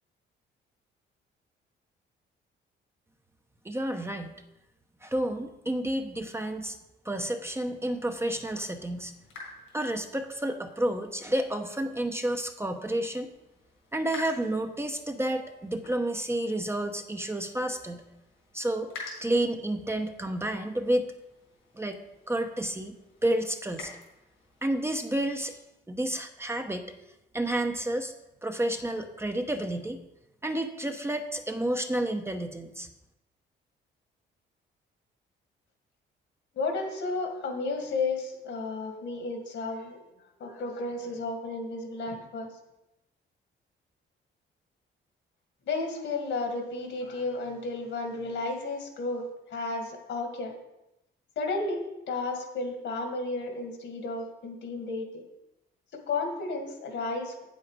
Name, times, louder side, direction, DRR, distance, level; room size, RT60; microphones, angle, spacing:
voice 1, 3.6-4.3 5.0-6.8 7.0-9.1 9.7-13.3 13.9-18.0 18.5-18.9 19.2-21.1 21.7-22.0 22.3-22.9 23.2-23.9 24.6-25.6 25.9-26.8 27.3-28.1 28.4-30.0 30.4-32.9, right 1 dB, 10° right, 6 dB, 0.7 m, -30 dB
sound 1, 7.8-25.7, left 3 dB, 85° left, 3.7 m, -50 dB
voice 2, 36.5-40.0 40.4-42.5 45.7-50.5 51.4-55.2 55.9-57.4, left 3 dB, 70° left, 4 dB, 2.0 m, -33 dB
8.4 x 7.4 x 4.8 m, 0.93 s
cardioid pair, 90°, 20 cm